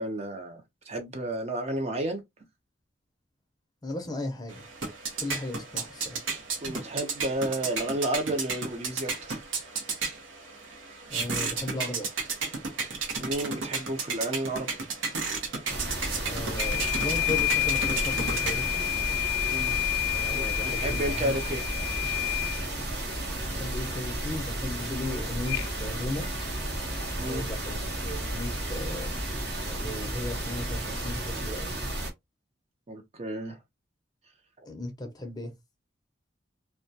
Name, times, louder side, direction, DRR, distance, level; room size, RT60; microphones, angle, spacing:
voice 1, 0.0-2.2 6.6-9.4 13.2-14.7 15.1-15.2 19.5-19.8 20.3-21.6 26.2-26.3 27.2-27.4 32.9-33.6, right 1 dB, 35° right, 0.4 m, -32 dB
voice 2, 3.8-4.7 5.2-6.2 11.1-12.1 16.2-18.9 20.1-21.4 23.5-26.3 27.3-29.2 29.6-31.7 34.7-35.5, left 2 dB, 20° left, 0.5 m, -36 dB
sound 1, 4.5-19.0, right 4 dB, 90° right, 0.7 m, -34 dB
sound 2, 15.7-32.1, right 1 dB, 60° right, 0.8 m, -33 dB
sound 3, 16.6-22.7 25.5-25.7, left 21 dB, 80° left, 0.3 m, -29 dB
2.2 x 2.1 x 2.6 m
head